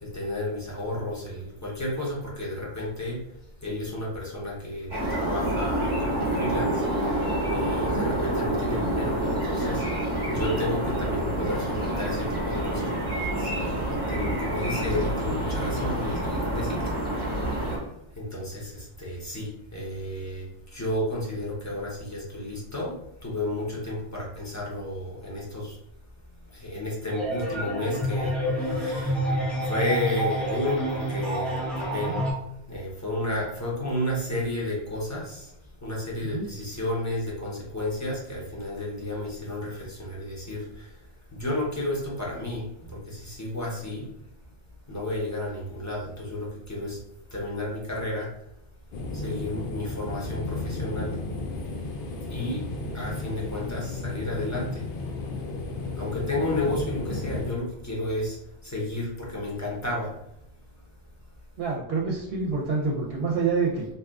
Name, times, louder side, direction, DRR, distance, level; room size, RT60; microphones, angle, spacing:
voice 1, 0.0-3.2 3.6-6.8 7.5-9.8 10.3-16.8 18.2-22.9 23.2-25.8 26.5-29.3 29.6-32.3 32.7-35.5 35.8-40.9 41.3-44.1 44.9-47.0 47.3-48.3 49.1-51.1 52.3-52.6 52.9-54.8 56.0-58.4 58.6-60.1, left 1 dB, 20° left, -4 dB, 0.8 m, -32 dB
sound 1, 4.9-17.8, right 1 dB, 25° right, 1.1 m, -27 dB
sound 2, 27.1-32.3, equal, ahead, 0.3 m, -28 dB
sound 3, 48.9-57.5, left 2 dB, 65° left, 0.7 m, -33 dB
voice 2, 61.6-63.9, right 4 dB, 65° right, -2 dB, 0.8 m, -27 dB
2.7 x 2.4 x 3.5 m, 0.81 s
omnidirectional pair, 1.1 m